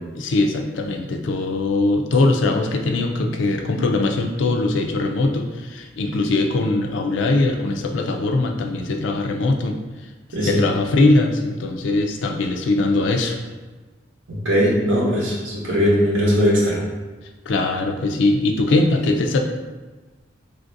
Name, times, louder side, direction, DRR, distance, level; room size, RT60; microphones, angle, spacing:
voice 1, 0.2-9.8 10.4-13.4 17.5-19.4, left 2 dB, 75° left, 4 dB, 0.4 m, -21 dB
voice 2, 10.3-10.6 14.3-16.8, equal, 85° right, -4 dB, 0.8 m, -19 dB
3.2 x 2.5 x 2.5 m, 1.3 s
head